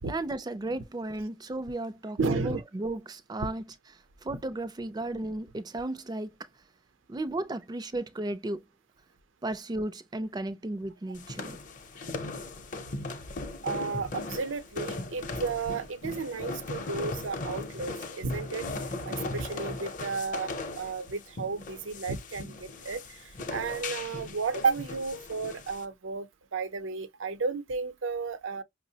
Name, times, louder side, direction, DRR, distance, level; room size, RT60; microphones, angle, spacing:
voice 1, 0.0-3.6 4.2-6.3 7.1-8.6 9.4-11.6, right 2 dB, 20° right, 0.4 m, -34 dB
voice 2, 2.2-2.6 13.6-18.7 19.1-28.6, right 4 dB, 90° right, 0.6 m, -33 dB
sound 1, 11.1-25.8, left 2 dB, 40° left, 0.6 m, -38 dB
5.5 x 2.0 x 2.7 m
head